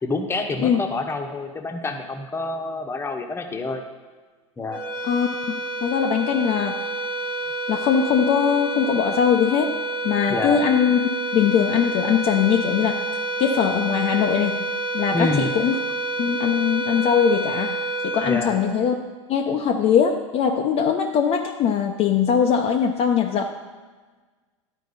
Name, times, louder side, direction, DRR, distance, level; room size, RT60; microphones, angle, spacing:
voice 1, 0.0-3.8 4.6-4.8 10.3-10.6 15.1-15.5 18.3-18.5, left 2 dB, 15° left, 4 dB, 1.0 m, -27 dB
sound 1, 4.7-19.3, right 2 dB, 30° right, 1.1 m, -28 dB
voice 2, 5.8-6.8 7.7-9.8 10.0-11.0 11.3-13.0 13.4-14.6 14.9-15.8 16.2-17.8 18.0-19.0 19.3-23.5, left 7 dB, 40° left, 2 dB, 0.6 m, -21 dB
11.5 x 4.5 x 4.1 m, 1.4 s
hypercardioid pair, 95°, 17 cm